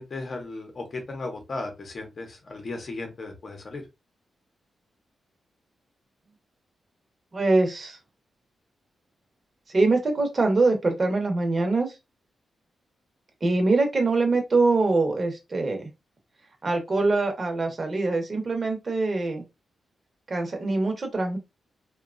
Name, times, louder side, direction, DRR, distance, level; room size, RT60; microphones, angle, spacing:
voice 1, 0.0-3.8, left 3 dB, 40° left, 0.8 m, -36 dB
voice 2, 7.3-8.0 9.7-12.0 13.4-15.9 16.6-19.4 20.3-21.4, right 3 dB, 35° right, 0.9 m, -23 dB
2.8 x 2.3 x 2.5 m
wide cardioid pair, 130°, 0 cm